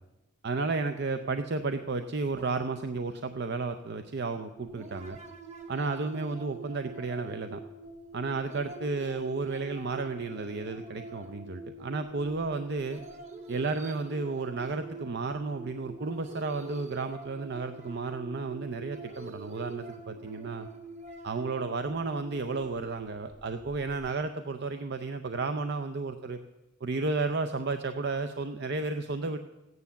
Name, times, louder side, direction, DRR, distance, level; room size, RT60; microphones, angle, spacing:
voice 1, 0.4-5.2 5.7-7.6 8.1-13.0 13.5-20.7 21.2-26.4 26.8-29.4, right 3 dB, 50° right, 8 dB, 0.6 m, -32 dB
sound 1, 4.6-24.1, right 3 dB, 35° right, 1.3 m, -45 dB
15.0 x 9.5 x 7.0 m, 1.1 s
head